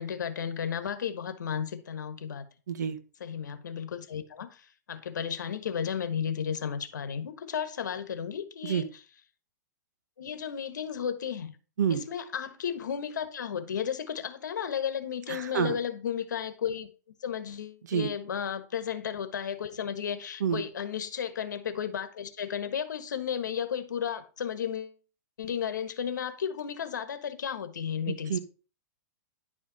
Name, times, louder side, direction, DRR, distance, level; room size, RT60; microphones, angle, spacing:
voice 1, 0.0-2.4 3.2-4.6 4.9-8.9 10.2-11.5 11.9-16.9 17.2-25.0 25.4-28.4, left 8 dB, 85° left, 1.4 m, -33 dB
voice 2, 2.7-3.0 8.6-8.8 11.8-12.0 15.3-15.8 17.9-18.1 20.4-20.6 28.1-28.4, right 8 dB, 75° right, 1.4 m, -28 dB
10.5 x 5.1 x 4.2 m
hypercardioid pair, 165°, 10 cm